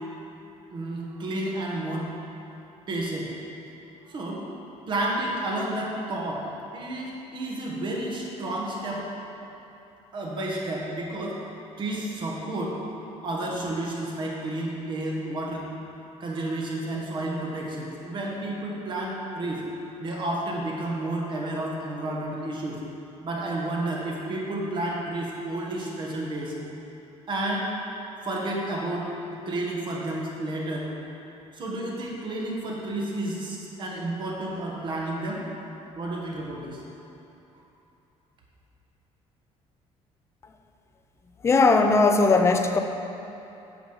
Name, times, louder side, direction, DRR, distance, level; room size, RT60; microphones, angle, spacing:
voice 1, 0.7-2.1 2.9-3.3 4.1-4.4 4.9-6.4 6.7-9.0 10.1-11.4 11.8-12.8 13.2-15.6 16.2-19.6 20.0-22.8 23.2-26.5 27.3-27.7 28.2-29.1 29.4-30.9 31.5-35.4 35.9-36.8, right 1 dB, 40° right, -2 dB, 1.5 m, -31 dB
voice 2, 41.4-42.8, left 3 dB, 20° left, 6 dB, 0.5 m, -19 dB
9.1 x 6.3 x 4.9 m, 2.9 s
cardioid pair, 170°, 12 cm